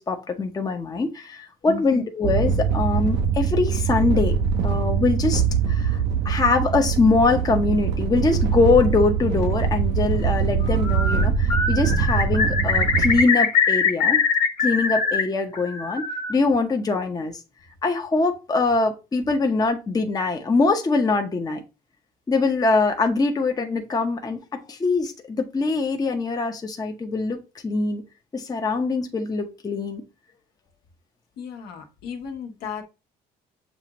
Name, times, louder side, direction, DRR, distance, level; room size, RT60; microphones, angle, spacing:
voice 1, 0.0-4.3 4.6-14.2 14.6-17.4 17.8-21.6 22.3-28.0 28.3-30.0, left 3 dB, 20° left, 0.7 m, -23 dB
voice 2, 1.6-2.0 31.4-32.8, left 5 dB, 70° left, 1.1 m, -34 dB
sound 1, 2.2-13.2, right 6 dB, 85° right, 0.7 m, -23 dB
Bird, 10.7-11.2 11.5-15.2 15.5-16.3, left 5 dB, 40° left, 1.4 m, -22 dB
7.2 x 2.4 x 3.0 m
cardioid pair, 110°, 17 cm